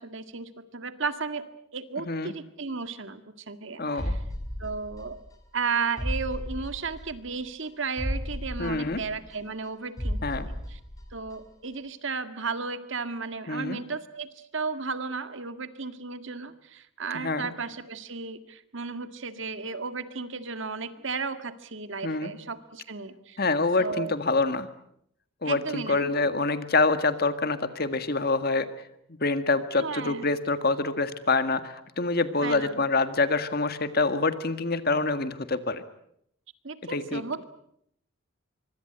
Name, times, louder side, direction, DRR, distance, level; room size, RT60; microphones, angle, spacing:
voice 1, 0.0-1.5 1.7-4.2 4.6-5.2 5.5-10.8 11.1-23.4 23.8-24.2 25.4-26.3 29.8-30.3 32.4-32.8 36.6-37.4, right 4 dB, 60° right, 10 dB, 1.8 m, -34 dB
voice 2, 2.0-2.3 3.8-4.2 8.6-9.0 10.2-10.5 13.5-13.8 17.1-17.5 22.0-22.3 23.4-24.7 25.4-28.7 29.2-35.8 36.9-37.2, left 3 dB, 45° left, 11 dB, 1.7 m, -26 dB
sound 1, 4.0-5.4 5.6-5.7 6.0-7.4 7.6-7.7 8.0-9.7 10.0-11.4 11.6-11.7, equal, 15° left, 3.3 m, -34 dB
24.5 x 24.5 x 8.0 m, 0.71 s
head